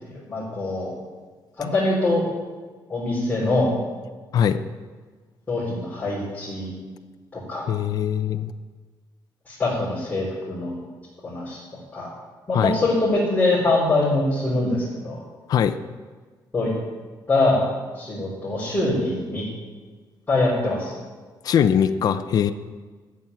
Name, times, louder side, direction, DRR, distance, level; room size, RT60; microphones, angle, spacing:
voice 1, 0.0-0.9 1.6-2.2 2.9-3.7 5.5-6.7 7.3-7.7 9.5-10.7 11.2-11.6 11.9-12.1 12.5-15.2 16.5-16.7 17.3-17.7 17.9-19.4 20.3-20.9, left 2 dB, 20° left, -9 dB, 4.0 m, -23 dB
voice 2, 7.7-8.5 12.5-12.7 15.5-15.8 21.4-22.5, left 8 dB, 55° left, 9 dB, 0.6 m, -21 dB
13.5 x 7.5 x 9.7 m, 1.4 s
cardioid pair, 170°, 8 cm